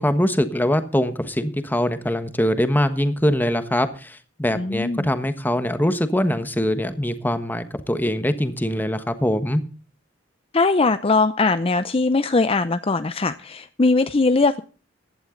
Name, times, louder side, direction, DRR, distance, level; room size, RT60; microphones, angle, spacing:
voice 1, 0.0-9.6, left 1 dB, 10° left, 10 dB, 1.3 m, -23 dB
voice 2, 4.6-5.1 10.5-14.6, left 3 dB, 30° left, 12 dB, 0.6 m, -20 dB
15.5 x 11.5 x 3.8 m, 0.38 s
head